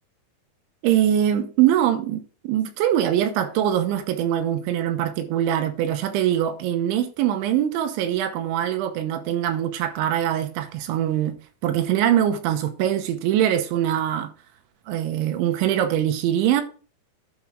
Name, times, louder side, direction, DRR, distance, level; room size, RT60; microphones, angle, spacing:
voice 1, 0.8-11.4 11.6-14.3 14.9-16.6, right 11 dB, 80° right, 3.2 m, -23 dB
10.5 x 5.8 x 3.7 m
omnidirectional pair, 5.5 m